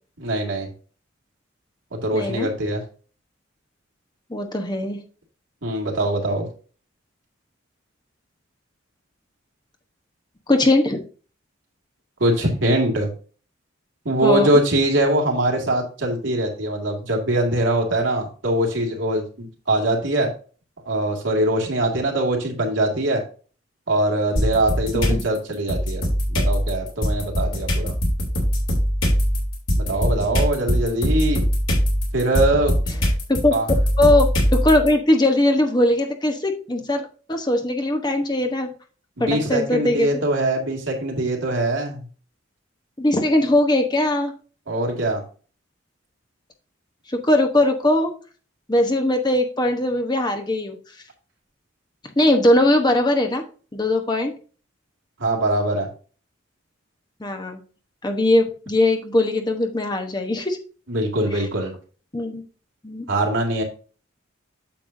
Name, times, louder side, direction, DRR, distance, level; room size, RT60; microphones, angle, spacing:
voice 1, 0.2-0.7 1.9-2.8 5.6-6.5 12.2-13.1 14.0-20.3 20.9-23.2 23.9-26.0 26.3-27.9 29.8-31.4 32.1-32.8 33.5-33.7 39.2-42.0 44.7-45.2 55.2-55.9 60.9-61.7 63.1-63.6, right 1 dB, 75° right, 1 dB, 2.2 m, -22 dB
voice 2, 2.1-2.5 4.3-5.0 10.5-11.0 14.2-14.5 25.1-25.2 32.9-33.0 33.3-33.5 34.0-38.7 39.2-40.1 43.0-44.3 47.1-48.1 48.7-50.8 52.2-53.4 53.7-54.4 57.2-57.6 58.0-60.6 61.3-61.4 62.1-62.4 62.8-63.0, left 1 dB, 20° left, 4 dB, 0.9 m, -20 dB
sound 1, 24.4-25.2 25.7-34.9, equal, 80° left, 3.3 m, -21 dB
8.7 x 6.9 x 2.6 m, 0.38 s
head